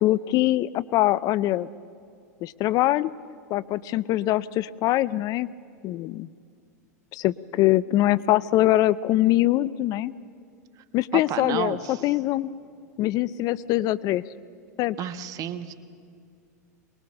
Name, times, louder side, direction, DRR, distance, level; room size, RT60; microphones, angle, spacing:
voice 1, 0.0-1.7 2.4-3.1 3.5-5.5 5.8-6.3 7.1-10.1 10.9-12.5 13.0-14.2 14.8-15.0, left 15 dB, 45° left, 19 dB, 0.6 m, -23 dB
voice 2, 11.3-12.1 15.0-15.7, right 10 dB, 40° right, 12 dB, 1.4 m, -32 dB
23.5 x 21.0 x 6.7 m, 2.3 s
hypercardioid pair, 100°, 9 cm